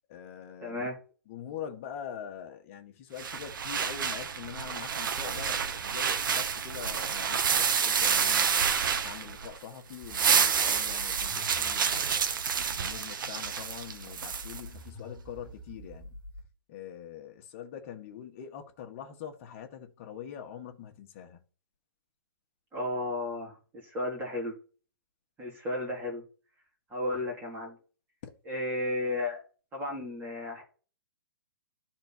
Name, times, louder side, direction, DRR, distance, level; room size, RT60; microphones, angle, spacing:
voice 1, 0.1-0.9 1.3-8.7 9.0-12.4 12.8-16.2 16.7-21.4 28.2-28.3, left 9 dB, 35° left, 1.7 m, -44 dB
voice 2, 0.6-0.9 22.7-23.6 23.8-24.5 25.4-26.2 26.9-27.8 28.5-29.4 29.7-30.6, left 1 dB, 15° right, 3.7 m, -33 dB
sound 1, 3.2-9.6 9.9-14.6, right 7 dB, 65° right, 1.3 m, -29 dB
sound 2, 10.0-13.0 13.4-16.5, equal, 10° left, 1.5 m, -47 dB
12.5 x 4.5 x 4.6 m
hypercardioid pair, 155°, 12 cm